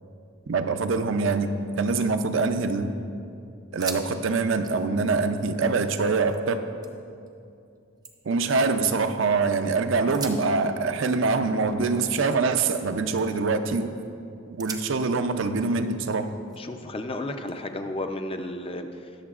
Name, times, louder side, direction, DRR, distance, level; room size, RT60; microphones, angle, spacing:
voice 1, 0.5-2.9 3.7-6.7 8.3-14.0 14.5-16.3, right 4 dB, 65° right, 8 dB, 0.5 m, -24 dB
sound 1, 2.0-2.8 3.2-3.3 3.6-4.1 4.4-6.4 6.8-7.3 7.7-9.3 10.0-12.8 13.1-13.5 14.0-14.1 14.6-16.8 17.5-18.6, right 5 dB, 20° right, 0.6 m, -44 dB
voice 2, 16.6-19.2, left 1 dB, 25° left, 6 dB, 0.5 m, -33 dB
20.5 x 6.8 x 2.4 m, 2.5 s
head